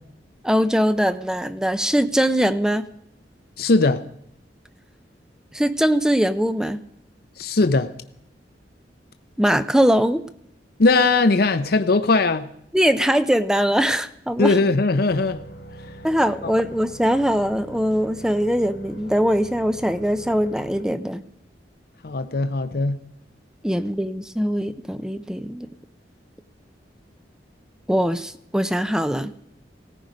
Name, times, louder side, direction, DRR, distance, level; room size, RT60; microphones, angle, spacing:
voice 1, 0.4-2.9 5.5-6.8 9.4-10.2 12.7-14.6 16.0-21.2 23.6-25.7 27.9-29.3, equal, 5° right, 11 dB, 0.6 m, -21 dB
voice 2, 3.6-4.0 7.4-7.9 10.8-12.5 14.4-15.4 16.4-16.5 22.0-23.0, left 3 dB, 60° left, 10 dB, 0.7 m, -19 dB
sound 1, 15.1-20.8, right 1 dB, 75° left, 2.2 m, -42 dB
18.5 x 14.5 x 5.2 m, 0.72 s
head